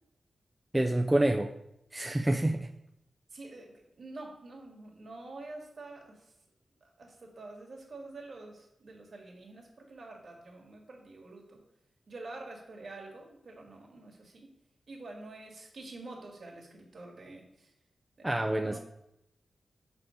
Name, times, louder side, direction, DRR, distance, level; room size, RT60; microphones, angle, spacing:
voice 1, 0.7-1.5 1.9-2.7 18.2-18.8, right 1 dB, 15° right, 4 dB, 0.4 m, -27 dB
voice 2, 3.3-6.3 6.8-11.6 12.1-14.5 14.9-17.7 18.2-18.8, right 2 dB, 55° right, 0 dB, 1.7 m, -47 dB
6.7 x 4.0 x 4.4 m, 0.82 s
wide cardioid pair, 110°, 0 cm